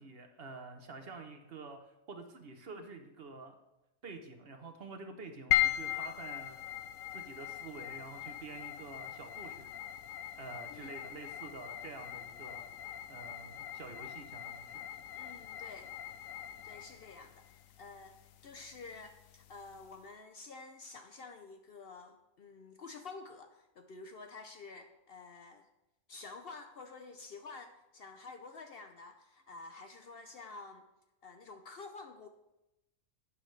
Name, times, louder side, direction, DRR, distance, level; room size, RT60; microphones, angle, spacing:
voice 1, 0.0-3.6 4.0-6.6 7.1-9.7 10.4-12.7 13.1-14.8, right 3 dB, 50° right, 6 dB, 1.0 m, -48 dB
sound 1, 5.5-20.0, left 13 dB, 85° left, 1.0 m, -39 dB
voice 2, 15.2-15.9 16.6-18.2 18.4-25.7 26.1-30.9 31.2-32.3, left 4 dB, 55° left, 7 dB, 0.7 m, -50 dB
11.5 x 8.4 x 3.2 m, 0.94 s
omnidirectional pair, 1.4 m